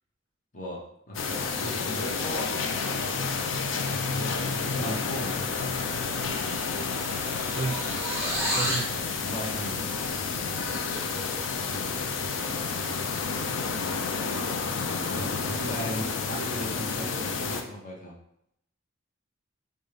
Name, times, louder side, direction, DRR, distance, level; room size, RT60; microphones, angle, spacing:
voice 1, 0.5-2.5 4.1-5.4 9.2-9.9 11.5-11.9 14.9-18.2, equal, 40° left, -2 dB, 0.9 m, -37 dB
sound 1, 1.1-17.6, left 4 dB, 70° left, 0.5 m, -30 dB
sound 2, 6.5-8.9, equal, 10° right, 1.0 m, -32 dB
voice 2, 7.5-8.1 8.5-9.0 10.9-11.1, right 4 dB, 30° right, -1 dB, 0.3 m, -34 dB
5.3 x 2.2 x 3.3 m, 0.74 s
head